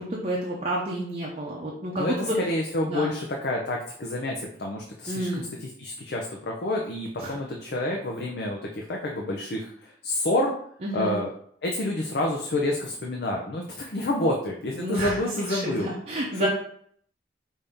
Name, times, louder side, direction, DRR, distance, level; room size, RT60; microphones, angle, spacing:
voice 1, 0.0-2.4 2.9-3.1 5.1-5.5 7.2-7.3 10.8-11.2 14.8-15.2 15.5-16.5, right 1 dB, 35° right, -4 dB, 0.6 m, -30 dB
voice 2, 2.0-10.5 10.9-11.3 11.6-15.9 16.3-16.5, left 1 dB, 60° left, 0 dB, 0.6 m, -28 dB
5.2 x 2.7 x 3.4 m, 0.63 s
head